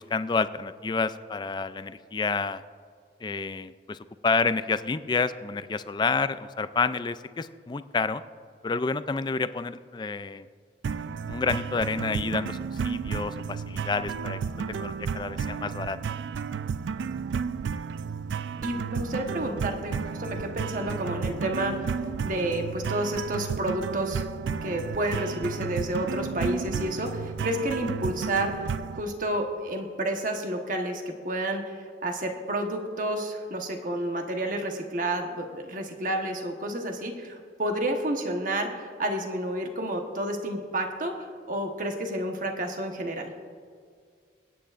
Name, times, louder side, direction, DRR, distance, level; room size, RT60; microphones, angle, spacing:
voice 1, 0.0-2.6 3.2-8.2 8.6-10.5 11.3-14.4 14.7-16.0, left 4 dB, 25° left, 13 dB, 0.3 m, -29 dB
sound 1, 10.8-29.0, right 6 dB, 80° right, 0.3 m, -32 dB
voice 2, 18.6-21.7 22.2-24.3 24.6-43.3, right 1 dB, 45° right, 3 dB, 1.2 m, -30 dB
Piano, 20.7-23.2, left 1 dB, 25° right, 1.8 m, -48 dB
24.5 x 9.2 x 2.5 m, 2.1 s
head